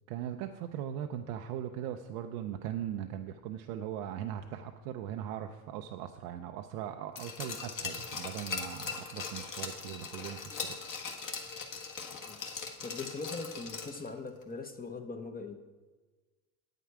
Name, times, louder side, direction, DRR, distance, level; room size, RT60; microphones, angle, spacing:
voice 1, 0.1-10.8, right 10 dB, 85° right, 6 dB, 0.6 m, -39 dB
Glass, 7.2-14.1 14.4-14.5, left 5 dB, 40° left, 1.5 m, -40 dB
voice 2, 12.8-15.6, left 4 dB, 20° left, 5 dB, 0.8 m, -41 dB
9.2 x 8.4 x 4.7 m, 1.3 s
supercardioid pair, 100°, 46 cm